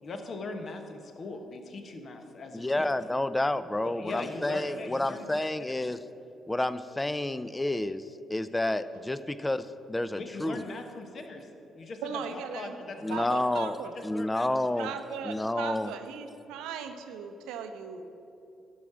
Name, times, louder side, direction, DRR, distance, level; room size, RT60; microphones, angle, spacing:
voice 1, 0.0-2.9 3.8-5.2 5.7-5.8 10.2-11.5 11.7-13.6 14.1-14.7, left 3 dB, 55° left, 5 dB, 1.1 m, -40 dB
voice 2, 2.5-6.0 6.5-8.0 8.3-10.6 13.0-13.8 14.0-14.9 15.2-15.9, left 1 dB, 15° left, 14 dB, 0.5 m, -30 dB
voice 3, 12.0-12.8 13.1-13.9 14.8-18.0, right 7 dB, 75° right, 7 dB, 0.7 m, -38 dB
12.0 x 4.9 x 7.3 m, 2.9 s
hypercardioid pair, 45°, 0 cm